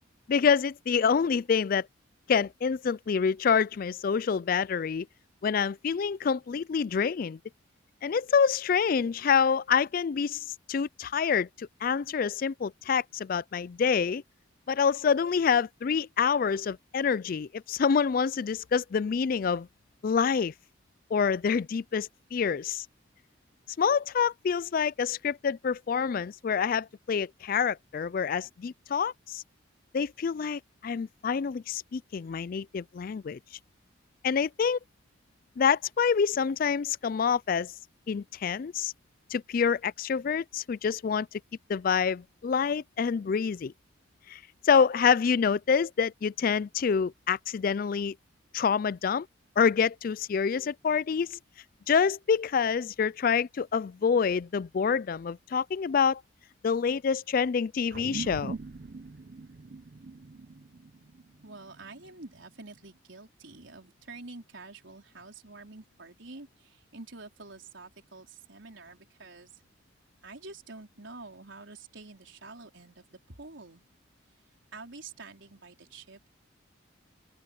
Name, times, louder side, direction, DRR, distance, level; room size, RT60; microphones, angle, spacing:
voice 1, 0.3-1.9 2.3-5.1 5.4-7.4 8.0-14.2 14.7-19.7 20.0-20.5 21.1-22.9 23.8-29.4 29.9-33.4 34.2-34.8 35.6-37.7 38.1-38.9 39.3-41.3 41.7-43.7 44.3-44.4 44.6-48.1 48.5-49.3 49.6-51.4 51.9-56.2 56.6-58.6, left 6 dB, 45° left, 0.3 m, -27 dB
sound 1, 57.9-62.7, right 3 dB, 50° right, 0.5 m, -42 dB
voice 2, 61.4-69.6 70.2-73.8 74.7-76.3, right 3 dB, 75° right, 4.2 m, -47 dB
open air
head